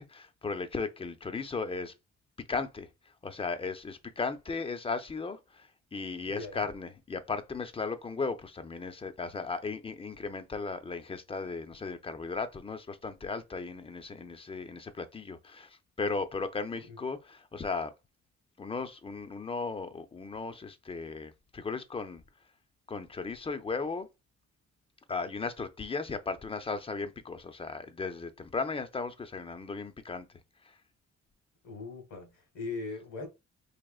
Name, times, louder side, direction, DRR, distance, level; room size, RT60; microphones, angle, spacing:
voice 1, 0.0-1.9 2.5-2.9 3.2-17.9 18.6-22.2 22.9-24.1 25.1-30.3 30.6-30.8, left 4 dB, 20° left, 0.6 m, -36 dB
voice 2, 6.3-6.7 16.8-17.0 31.6-33.3, left 3 dB, 80° left, 1.7 m, -40 dB
4.9 x 2.9 x 2.4 m
cardioid pair, 90°, 30 cm